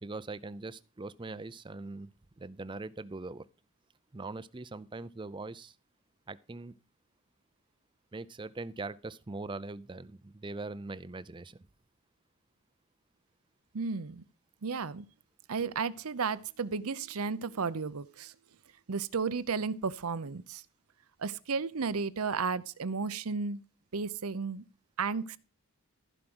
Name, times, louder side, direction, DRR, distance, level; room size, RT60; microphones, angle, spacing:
voice 1, 0.0-3.4 4.1-5.8 6.3-6.7 8.1-11.6, right 3 dB, 20° right, 0.5 m, -41 dB
voice 2, 13.7-14.2 14.6-15.1 15.5-18.3 18.9-20.6 21.2-23.6 23.9-24.6 25.0-25.4, right 5 dB, 75° right, 0.7 m, -33 dB
15.0 x 5.1 x 6.1 m
head